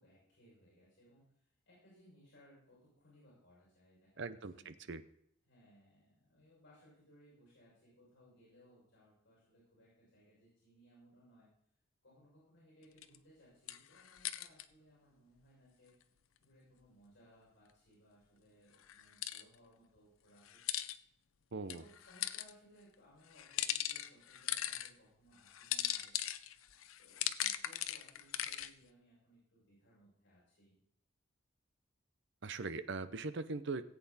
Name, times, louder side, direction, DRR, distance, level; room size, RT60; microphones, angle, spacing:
voice 1, 0.0-4.7 5.4-11.5 12.0-15.9 16.4-20.8 21.7-26.2 27.0-30.8, equal, 60° left, -5 dB, 6.4 m, -65 dB
voice 2, 4.2-5.0 21.5-21.8 32.4-33.8, right 3 dB, 60° right, 13 dB, 0.7 m, -41 dB
sound 1, 13.0-13.2 13.7-14.6 18.9-19.4 20.4-21.0 21.7-22.5 23.3-24.9 25.5-28.7, left 12 dB, 85° left, 0.6 m, -39 dB
18.0 x 8.4 x 4.2 m, 0.71 s
head